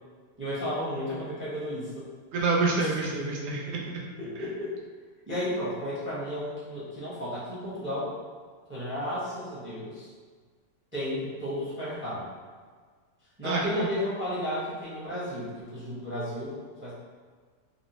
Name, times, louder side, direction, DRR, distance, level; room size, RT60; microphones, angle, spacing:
voice 1, 0.4-2.1 2.8-2.9 4.2-4.8 5.3-8.1 8.7-10.1 10.9-12.3 13.4-16.9, left 1 dB, 15° right, -9 dB, 0.4 m, -33 dB
voice 2, 2.3-4.0 13.4-13.9, right 3 dB, 70° right, -3 dB, 0.6 m, -27 dB
3.9 x 2.0 x 2.7 m, 1.5 s
omnidirectional pair, 1.6 m